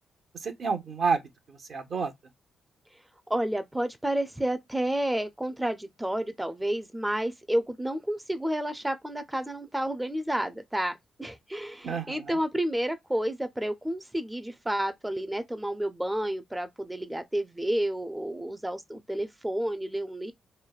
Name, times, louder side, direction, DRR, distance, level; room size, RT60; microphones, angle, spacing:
voice 1, 0.3-1.2 1.5-2.1 11.8-12.4, right 5 dB, 60° right, 0.7 m, -30 dB
voice 2, 3.3-20.3, right 1 dB, 10° right, 0.4 m, -30 dB
3.1 x 2.1 x 2.3 m
cardioid pair, 65°, 0 cm